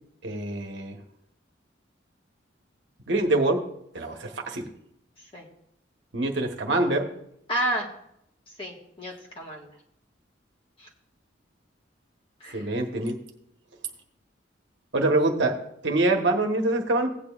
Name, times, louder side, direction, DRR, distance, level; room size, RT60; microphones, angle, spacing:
voice 1, 0.2-1.0 3.1-3.6 3.9-4.7 6.1-7.1 12.5-13.2 14.9-17.1, right 2 dB, 70° right, 3 dB, 1.2 m, -25 dB
voice 2, 7.5-7.9 8.6-9.7 10.8-10.9 12.4-12.7, right 1 dB, 30° left, -3 dB, 1.6 m, -31 dB
16.5 x 8.8 x 2.5 m, 0.75 s
head